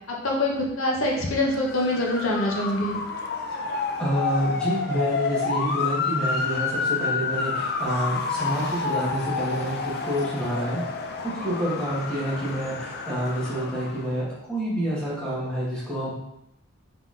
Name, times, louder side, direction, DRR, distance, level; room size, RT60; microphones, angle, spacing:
voice 1, 0.1-3.0, left 1 dB, 75° left, -1 dB, 0.7 m, -25 dB
Motor vehicle (road) / Siren, 1.4-14.1, left 4 dB, 50° left, 0.3 m, -29 dB
voice 2, 4.0-10.8 11.2-16.1, equal, 5° left, -8 dB, 1.2 m, -28 dB
3.9 x 3.8 x 2.4 m, 0.86 s
head